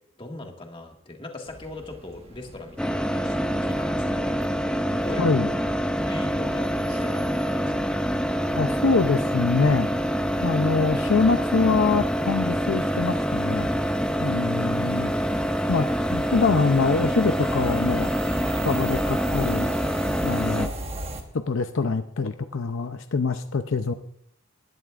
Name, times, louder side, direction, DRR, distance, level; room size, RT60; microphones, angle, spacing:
voice 1, 0.2-3.4 3.6-4.4 4.9-5.5 5.9-7.9 20.5-20.7, left 2 dB, 25° left, 2 dB, 1.8 m, -40 dB
sound 1, 1.5-21.2, right 1 dB, 30° right, 1.3 m, -39 dB
sound 2, 2.8-20.7, equal, 5° left, 0.5 m, -26 dB
voice 2, 5.2-5.5 8.6-9.9 10.4-13.7 14.2-15.1 15.7-18.2 18.6-19.7 20.2-20.7 21.3-23.9, left 4 dB, 70° left, 8 dB, 0.6 m, -24 dB
19.5 x 11.0 x 2.5 m, 0.71 s
head